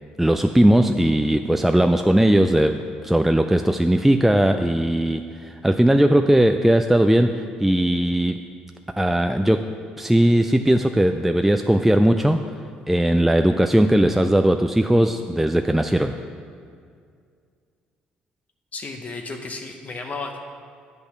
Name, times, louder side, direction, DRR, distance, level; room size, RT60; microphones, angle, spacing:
voice 1, 0.2-8.4 9.0-12.4 12.9-16.2, right 1 dB, 5° right, 6 dB, 0.4 m, -18 dB
voice 2, 18.7-20.4, left 3 dB, 40° left, 3 dB, 0.8 m, -33 dB
8.4 x 5.4 x 5.9 m, 2.2 s
hypercardioid pair, 60°, 4 cm